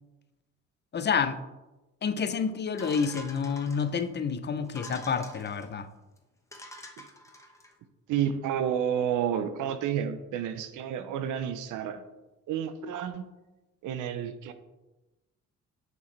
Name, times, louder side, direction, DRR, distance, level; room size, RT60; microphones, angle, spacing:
voice 1, 0.9-1.4 2.0-5.9, left 6 dB, 35° left, 11 dB, 0.5 m, -29 dB
sound 1, 2.8-4.1 4.6-5.7 6.2-6.3 6.5-7.7, left 1 dB, 10° left, 1.1 m, -46 dB
voice 2, 8.1-12.0 12.5-13.3 13.8-14.5, right 9 dB, 90° right, 11 dB, 0.7 m, -30 dB
7.0 x 6.1 x 3.3 m, 1.1 s
cardioid pair, 90°, 30 cm